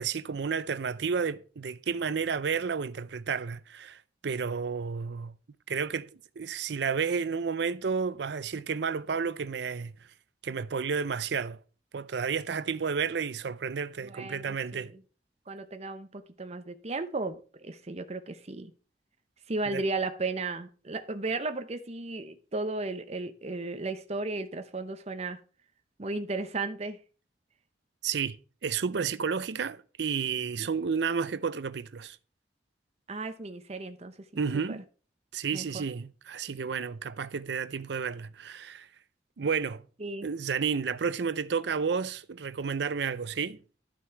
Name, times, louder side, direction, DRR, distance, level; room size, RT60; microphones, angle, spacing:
voice 1, 0.0-5.3 5.7-6.1 6.4-9.9 10.4-11.6 11.9-14.9 19.7-19.8 28.0-28.4 28.6-32.2 34.4-34.8 35.3-38.9 39.4-39.8 40.2-43.6, right 6 dB, 65° right, 0.5 m, -31 dB
voice 2, 14.0-15.0 15.5-18.7 19.5-25.4 26.0-27.0 33.1-34.4 34.7-34.8 35.5-35.8 40.0-40.3, right 3 dB, 35° right, 0.8 m, -35 dB
11.5 x 6.1 x 4.6 m
head